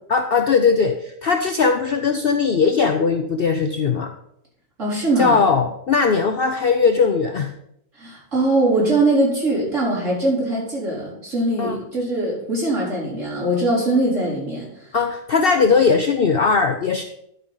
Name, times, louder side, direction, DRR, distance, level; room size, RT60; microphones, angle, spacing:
voice 1, 0.1-4.1 5.2-7.5 11.6-11.8 14.9-17.0, left 5 dB, 55° left, 7 dB, 0.7 m, -19 dB
voice 2, 4.8-5.4 8.0-14.7, right 2 dB, 60° right, -6 dB, 4.3 m, -21 dB
11.5 x 5.1 x 5.5 m, 0.76 s
omnidirectional pair, 1.4 m